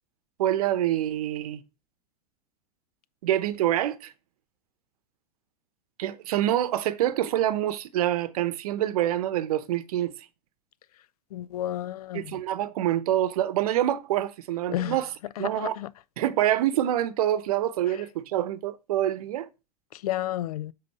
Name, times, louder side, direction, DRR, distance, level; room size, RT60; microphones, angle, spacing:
voice 1, 0.4-1.6 3.2-4.1 6.0-10.1 12.1-15.1 15.4-15.8 16.2-19.5, right 12 dB, 65° right, 0.9 m, -26 dB
voice 2, 11.3-12.3 14.7-15.0 15.4-15.9 20.0-20.7, left 13 dB, 65° left, 0.6 m, -31 dB
7.7 x 4.0 x 6.6 m
hypercardioid pair, 105°, 21 cm